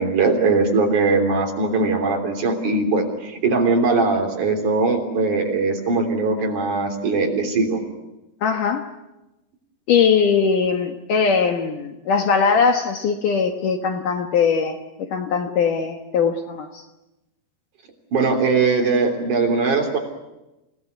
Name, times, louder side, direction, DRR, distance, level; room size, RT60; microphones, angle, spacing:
voice 1, 0.0-7.8 18.1-20.0, right 3 dB, 50° right, 3 dB, 4.6 m, -20 dB
voice 2, 8.4-8.8 9.9-16.8, left 6 dB, 60° left, 5 dB, 2.7 m, -20 dB
28.0 x 18.0 x 9.5 m, 0.98 s
omnidirectional pair, 4.6 m